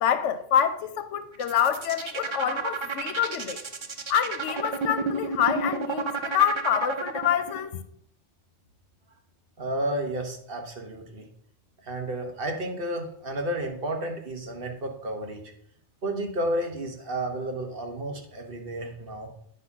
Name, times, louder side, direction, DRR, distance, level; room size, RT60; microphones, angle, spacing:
voice 1, 0.0-3.6 4.1-7.8, left 9 dB, 80° left, 1.0 m, -26 dB
sound 1, 1.3-7.6, right 4 dB, 35° right, 0.5 m, -31 dB
voice 2, 9.6-11.3 11.8-15.4 16.0-19.3, right 1 dB, 50° right, 1.4 m, -31 dB
9.1 x 4.1 x 5.9 m
omnidirectional pair, 1.2 m